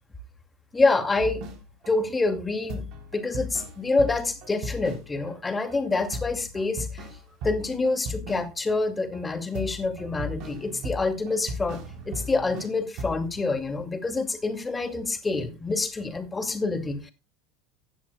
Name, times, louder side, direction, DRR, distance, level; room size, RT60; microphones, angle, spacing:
voice 1, 0.7-1.4 1.9-2.9 3.1-7.1 7.4-11.8 12.1-17.1, left 3 dB, 15° left, 2.3 m, -27 dB
sound 1, 1.2-1.9 2.3-2.4 2.7-5.4 5.7-5.8 6.1-8.8 9.1-12.7 13.0-13.4, equal, 50° right, 3.6 m, -37 dB
15.5 x 10.5 x 2.2 m
figure-of-eight pair, 75°, 0 cm